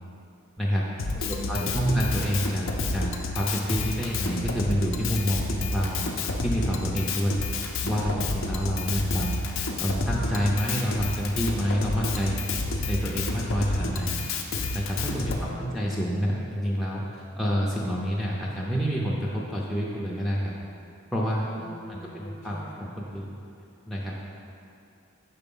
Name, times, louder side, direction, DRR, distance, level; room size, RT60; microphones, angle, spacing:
voice 1, 0.6-1.1 1.5-6.1 6.4-7.4 7.8-12.4 12.9-14.1 14.7-20.5 21.1-21.5 21.9-23.3 23.9-24.2, equal, ahead, -5 dB, 0.5 m, -28 dB
Drum kit, 1.0-15.4, left 3 dB, 70° left, 0.5 m, -30 dB
voice 2, 1.1-2.1 8.9-9.3 15.2-16.2 21.6-22.9, left 1 dB, 40° left, 0 dB, 0.8 m, -42 dB
5.6 x 4.3 x 5.4 m, 2.6 s
head